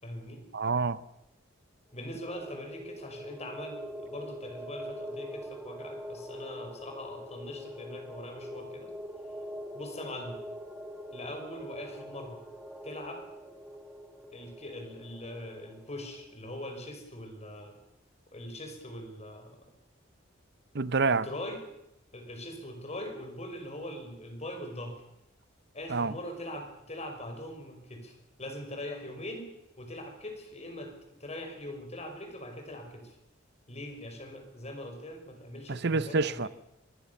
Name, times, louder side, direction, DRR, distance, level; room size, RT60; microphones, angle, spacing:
voice 1, 0.0-0.4 1.9-8.9 9.7-10.4 11.1-12.4 12.8-13.2 14.3-17.7 18.3-19.6 21.1-21.6 22.1-25.0 25.7-29.5 29.8-33.2 33.7-36.4, left 1 dB, 35° left, 5.8 m, -42 dB
voice 2, 0.5-1.0 20.7-21.3 25.9-26.1 35.7-36.5, right 4 dB, 60° right, 0.8 m, -27 dB
sound 1, 1.9-16.3, equal, 5° right, 2.2 m, -44 dB
24.5 x 21.5 x 7.1 m
head